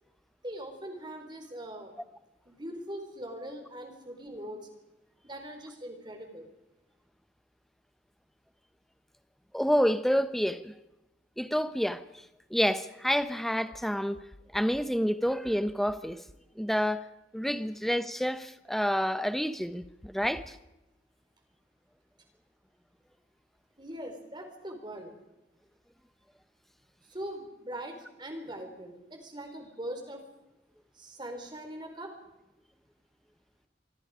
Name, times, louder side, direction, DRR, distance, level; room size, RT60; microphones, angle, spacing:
voice 1, 0.4-1.9 2.4-4.7 5.2-6.5 23.8-25.1 27.1-30.2 30.9-32.1, right 1 dB, 25° right, 4.3 m, -41 dB
voice 2, 9.5-10.7 11.4-12.0 12.5-14.2 14.5-16.2 16.6-17.0 17.3-20.6, equal, ahead, 1.0 m, -28 dB
25.5 x 24.5 x 5.1 m
head